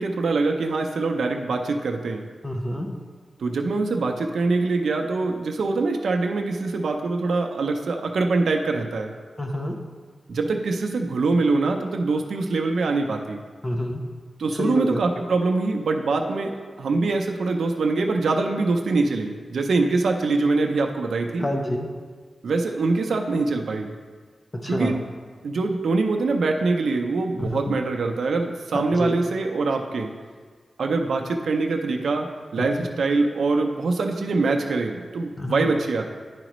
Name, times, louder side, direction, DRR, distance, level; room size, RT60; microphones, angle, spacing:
voice 1, 0.0-2.2 3.4-9.1 10.3-13.4 14.4-21.5 22.4-23.9 24.7-25.0 25.4-30.1 30.8-32.3 32.5-36.0, right 3 dB, 85° right, 3 dB, 0.5 m, -24 dB
voice 2, 2.4-2.9 9.4-9.7 13.6-14.0 14.6-15.0 21.4-21.9 24.6-25.0 27.4-27.7 29.0-29.2 32.8-32.9 35.4-35.7, left 1 dB, 15° left, 2 dB, 0.7 m, -27 dB
10.5 x 5.0 x 3.0 m, 1.6 s
wide cardioid pair, 170°, 0 cm